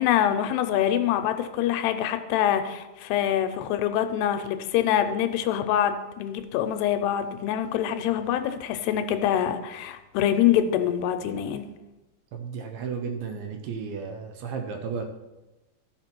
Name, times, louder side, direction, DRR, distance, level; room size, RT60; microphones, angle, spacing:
voice 1, 0.0-11.7, left 10 dB, 85° left, 8 dB, 2.6 m, -25 dB
voice 2, 12.3-15.1, right 6 dB, 75° right, 5 dB, 2.5 m, -33 dB
13.5 x 5.8 x 4.5 m, 1.1 s
omnidirectional pair, 4.9 m